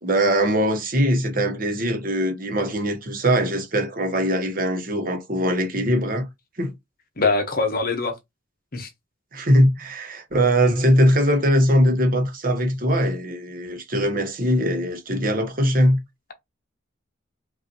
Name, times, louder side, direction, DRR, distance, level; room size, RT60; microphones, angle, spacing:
voice 1, 0.0-6.3 6.6-6.7 9.3-16.0, equal, 50° right, 1.1 m, -21 dB
voice 2, 7.2-8.2 8.7-8.9, left 3 dB, 50° left, 1.1 m, -23 dB
5.2 x 2.6 x 2.9 m
head